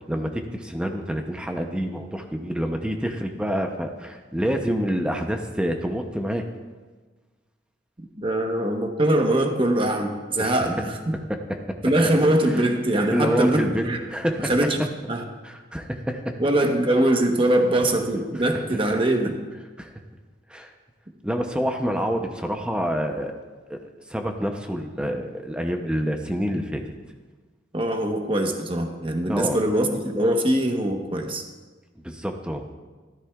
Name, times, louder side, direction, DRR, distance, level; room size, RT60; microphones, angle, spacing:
voice 1, 0.1-6.4 10.4-10.6 11.3-11.8 12.5-12.6 13.1-13.8 14.1-14.5 15.4-16.4 19.8-19.9 20.5-20.7 21.2-23.3 23.7-23.8 24.1-26.8 29.2-29.6 32.0-32.6, equal, 5° right, 4 dB, 0.7 m, -27 dB
voice 2, 8.2-11.1 11.8-14.1 14.4-15.2 16.4-19.4 27.7-31.5, right 1 dB, 30° right, 3 dB, 1.1 m, -22 dB
14.0 x 13.0 x 2.4 m, 1.3 s
head